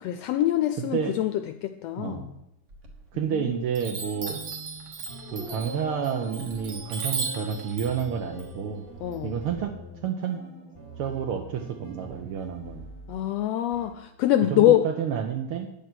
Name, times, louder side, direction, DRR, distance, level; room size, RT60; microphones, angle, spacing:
voice 1, 0.0-1.3 1.6-2.3 3.3-3.5 9.0-9.3 13.1-14.8, left 13 dB, 80° left, 9 dB, 1.5 m, -24 dB
voice 2, 0.8-1.2 2.0-2.3 3.1-4.4 5.3-8.8 9.2-9.7 10.0-10.4 11.0-12.9 14.5-15.7, right 7 dB, 75° right, 5 dB, 1.3 m, -30 dB
Chime, 2.7-3.4 3.7-9.6, right 4 dB, 50° right, 1.5 m, -37 dB
sound 1, 3.9-13.3 13.7-13.9, right 1 dB, 20° right, 0.8 m, -46 dB
Dog, 5.1-11.7, equal, 5° left, 1.1 m, -45 dB
9.4 x 6.8 x 5.9 m, 0.88 s
omnidirectional pair, 3.3 m